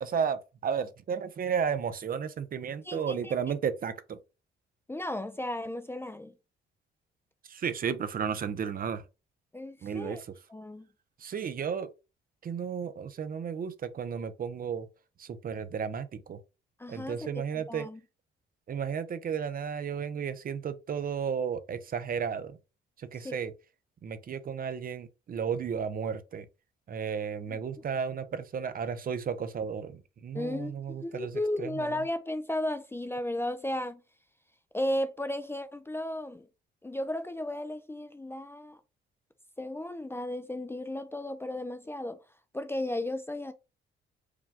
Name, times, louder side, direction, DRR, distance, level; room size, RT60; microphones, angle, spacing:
voice 1, 0.0-4.2 7.4-9.0 9.8-10.3 11.2-11.9 12.4-14.9 15.2-16.4 16.9-17.9 18.7-22.6 23.0-23.5 24.0-26.5 26.9-32.0, right 7 dB, 45° right, 0.6 m, -33 dB
voice 2, 2.8-3.3 4.9-6.3 9.5-10.2 10.5-10.9 16.8-18.0 23.2-23.4 27.5-27.6 30.3-34.0 34.7-36.5 36.8-38.8 39.6-42.2 42.5-43.5, left 1 dB, 10° left, 0.4 m, -34 dB
4.9 x 2.2 x 3.5 m
cardioid pair, 90°, 20 cm